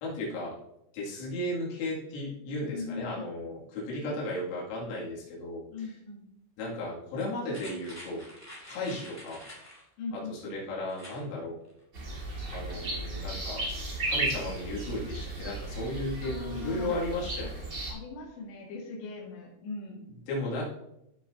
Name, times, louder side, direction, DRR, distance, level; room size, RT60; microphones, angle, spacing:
voice 1, 0.0-0.5 0.9-5.6 6.6-8.2 8.7-9.4 10.3-11.6 12.4-13.6 14.0-17.7 20.3-20.6, left 1 dB, 85° left, -5 dB, 5.1 m, -35 dB
voice 2, 2.7-3.3 4.0-4.2 5.7-6.3 10.0-10.5 16.2-17.5 17.9-20.1, left 3 dB, 65° left, -4 dB, 4.1 m, -40 dB
sound 1, 7.5-9.8 10.9-11.2 11.6-11.7, equal, 20° left, 0.4 m, -47 dB
sound 2, 11.9-17.9, right 2 dB, 70° right, 0.9 m, -35 dB
14.5 x 6.4 x 2.8 m, 0.83 s
omnidirectional pair, 5.9 m